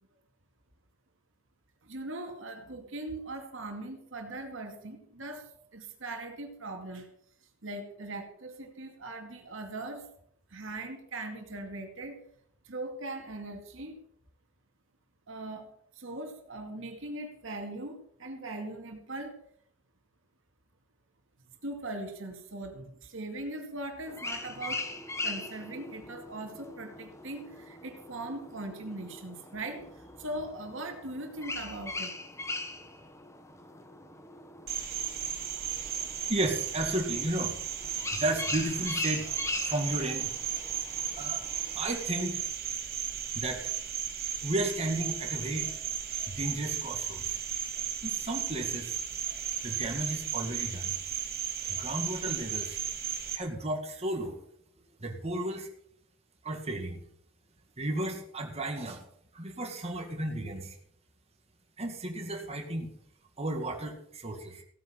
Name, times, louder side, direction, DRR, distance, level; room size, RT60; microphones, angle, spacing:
voice 1, 1.8-7.1 7.6-10.1 10.5-12.2 12.6-14.0 15.3-15.7 15.9-19.4 21.6-24.9 25.2-32.1, right 2 dB, 70° right, 4 dB, 2.3 m, -40 dB
sound 1, 24.1-41.8, left 2 dB, 15° left, 1.4 m, -41 dB
Cricket, 34.7-53.4, right 9 dB, 50° right, 2.3 m, -35 dB
voice 2, 36.3-37.5 38.1-39.3 39.6-40.3 41.2-41.4 41.7-42.4 43.3-43.6 44.4-45.7 46.3-47.2 48.0-49.0 49.6-50.9 51.7-52.8 53.3-54.4 55.0-55.7 56.4-57.0 57.8-59.0 59.3-60.8 61.8-62.9 63.4-64.6, right 1 dB, 30° right, 2 dB, 2.3 m, -33 dB
16.0 x 9.3 x 5.8 m, 0.66 s
head